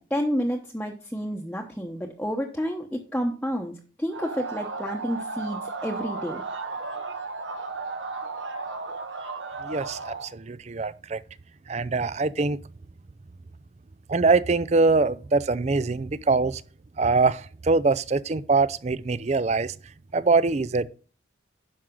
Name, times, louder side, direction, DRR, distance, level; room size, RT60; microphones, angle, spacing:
voice 1, 0.1-6.4, equal, 5° left, 0.9 m, -30 dB
sound 1, 4.1-10.3, right 3 dB, 75° right, 1.4 m, -34 dB
voice 2, 9.6-11.2 11.7-12.6 14.1-16.6 17.0-19.7 20.1-20.9, right 3 dB, 35° right, 0.4 m, -23 dB
10.5 x 6.3 x 3.8 m
head